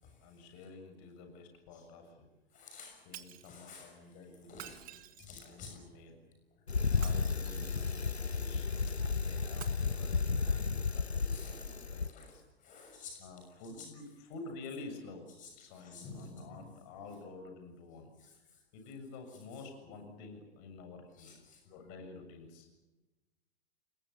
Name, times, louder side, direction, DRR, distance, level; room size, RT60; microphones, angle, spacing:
voice 1, 0.2-2.1 3.1-5.0 5.3-6.1 7.0-12.4 13.2-15.3 15.6-18.1 18.7-21.4 21.7-22.7, left 3 dB, 40° left, 5 dB, 7.1 m, -50 dB
voice 2, 2.5-3.1 3.4-4.0 4.4-4.9 5.2-5.8 11.2-13.3 13.8-13.9 15.4-15.5 15.7-16.7 18.2-18.3 21.2-21.6, left 4 dB, 25° left, 3 dB, 6.5 m, -51 dB
Shatter, 3.1-3.6 4.5-5.5 6.9-7.8 9.5-9.7, right 13 dB, 25° right, 1.8 m, -49 dB
Bicycle, 6.7-12.1, left 4 dB, 85° left, 0.8 m, -33 dB
29.5 x 22.0 x 7.0 m, 1.1 s
figure-of-eight pair, 100°, 32 cm